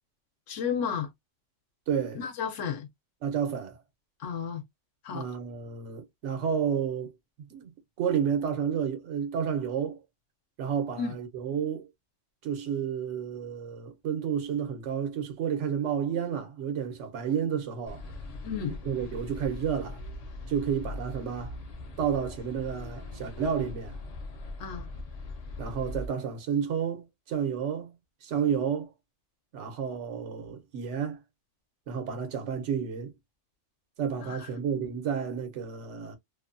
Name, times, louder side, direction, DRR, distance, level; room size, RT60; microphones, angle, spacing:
voice 1, 0.5-1.1 2.1-2.9 4.2-4.6 5.0-5.3 11.0-11.1 18.4-18.8 24.6-24.9 34.2-34.5, left 7 dB, 85° left, 1.0 m, -32 dB
voice 2, 1.9-2.2 3.2-3.8 5.1-7.1 7.5-7.7 8.0-10.0 10.6-11.9 12.4-18.0 18.8-20.0 20.5-21.6 22.0-24.0 25.6-27.9 28.2-28.9 29.5-31.2 31.9-33.1 34.0-36.2, right 7 dB, 75° right, 1.1 m, -31 dB
sound 1, 17.9-26.1, left 2 dB, 50° left, 0.5 m, -40 dB
2.7 x 2.2 x 2.4 m
omnidirectional pair, 1.2 m